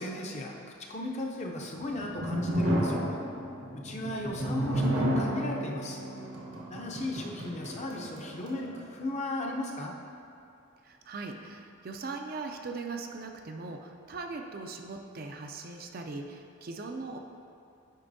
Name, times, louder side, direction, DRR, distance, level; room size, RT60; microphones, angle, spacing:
voice 1, 0.0-3.1 3.7-6.0 6.7-9.9, left 1 dB, 35° left, 0 dB, 0.6 m, -35 dB
sound 1, 1.7-8.8, equal, 75° right, 1.1 m, -32 dB
voice 2, 10.8-17.2, right 3 dB, 45° right, 4 dB, 0.4 m, -40 dB
9.1 x 5.2 x 2.7 m, 2.5 s
head